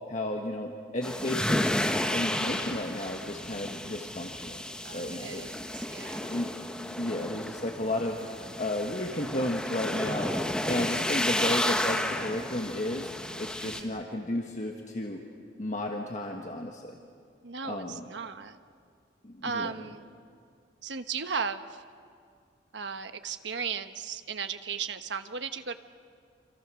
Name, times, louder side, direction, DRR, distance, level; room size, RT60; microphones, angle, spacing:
voice 1, 0.1-1.7 2.1-4.6 4.9-5.5 6.2-6.5 6.9-8.2 8.6-10.3 10.7-13.1 13.4-15.2 15.6-17.0 17.7-18.0 19.2-19.7, left 1 dB, 40° left, 1 dB, 1.5 m, -33 dB
sound 1, 1.0-13.8, left 1 dB, 5° left, 1.3 m, -32 dB
voice 2, 4.8-6.4 13.6-14.1 17.4-18.6 19.4-20.2 20.8-21.8 22.7-25.8, right 6 dB, 80° right, 9 dB, 1.1 m, -36 dB
27.5 x 26.5 x 6.3 m, 2.3 s
head